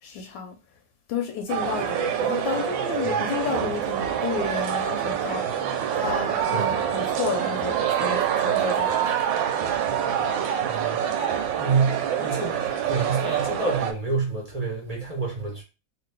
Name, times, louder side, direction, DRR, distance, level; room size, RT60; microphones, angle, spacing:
voice 1, 0.0-0.6 1.1-9.4, left 6 dB, 80° left, 1.3 m, -32 dB
sound 1, 1.5-13.9, right 9 dB, 80° right, 1.3 m, -26 dB
voice 2, 10.6-11.1 11.6-15.6, right 4 dB, 35° right, 0.6 m, -28 dB
2.9 x 2.8 x 3.3 m
omnidirectional pair, 2.1 m